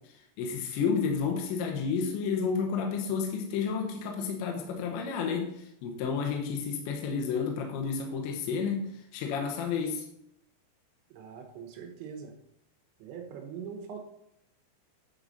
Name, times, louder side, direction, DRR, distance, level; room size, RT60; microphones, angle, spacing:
voice 1, 0.4-10.1, left 6 dB, 75° left, 2 dB, 3.0 m, -31 dB
voice 2, 11.1-12.3 13.0-14.0, right 7 dB, 75° right, 3 dB, 3.0 m, -42 dB
10.0 x 4.8 x 4.0 m, 0.76 s
omnidirectional pair, 5.7 m